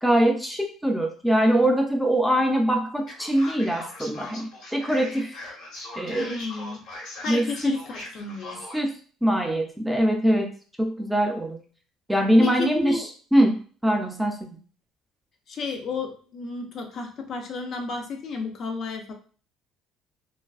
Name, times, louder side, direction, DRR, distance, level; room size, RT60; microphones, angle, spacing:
voice 1, 0.0-5.3 6.0-6.3 7.3-7.8 8.7-8.9 9.2-10.5 10.8-11.6 12.1-13.0 13.3-14.5, right 1 dB, 5° right, 2 dB, 0.5 m, -22 dB
Male speech man speaking, 3.1-8.9, left 1 dB, 75° left, 1.1 m, -40 dB
voice 2, 6.1-6.9 7.2-8.6 12.4-13.1 15.5-19.1, left 4 dB, 50° left, 3 dB, 0.5 m, -32 dB
2.5 x 2.2 x 2.3 m, 0.41 s
supercardioid pair, 95°, 0 cm